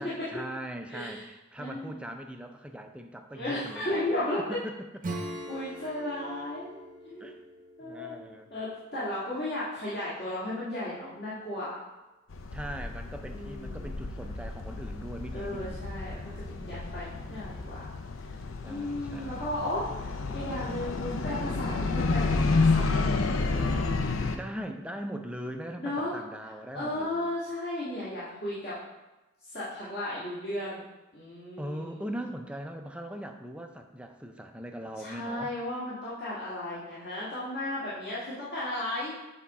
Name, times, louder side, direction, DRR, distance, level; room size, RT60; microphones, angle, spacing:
voice 1, 0.0-3.9 4.5-4.8 5.1-5.2 7.2-7.4 7.8-8.5 12.5-15.9 17.1-17.7 18.6-19.5 24.3-27.3 31.6-35.5, equal, 5° right, 4 dB, 0.4 m, -40 dB
voice 2, 0.9-1.2 1.6-2.0 3.3-4.4 5.5-7.3 7.8-8.2 8.5-11.8 13.3-13.9 15.3-17.8 18.7-19.9 20.3-23.3 25.8-26.2 26.7-28.8 29.5-30.8 31.1-32.0 35.0-39.1, left 1 dB, 50° left, -11 dB, 1.9 m, -35 dB
Acoustic guitar / Strum, 5.0-9.3, right 1 dB, 40° right, 0.7 m, -42 dB
sound 1, 12.3-24.4, left 3 dB, 75° left, 0.6 m, -30 dB
8.1 x 3.6 x 4.2 m, 1.0 s
head